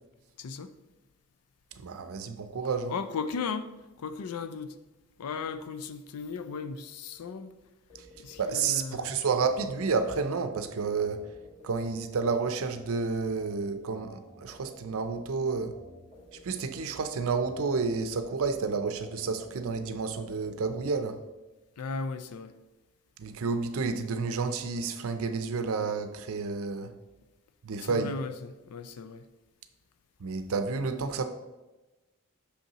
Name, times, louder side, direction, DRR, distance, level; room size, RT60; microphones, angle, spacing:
voice 1, 0.4-0.7 2.9-4.8 5.2-7.5 8.2-9.2 21.8-22.6 27.8-29.3, left 5 dB, 85° left, 0.4 m, -36 dB
voice 2, 1.8-2.9 8.4-11.3 11.6-15.8 16.4-21.2 23.2-26.9 27.6-28.1 30.2-31.2, right 4 dB, 65° right, 0.5 m, -30 dB
sound 1, 7.9-21.1, left 1 dB, 35° left, 1.6 m, -52 dB
6.3 x 5.4 x 2.9 m
head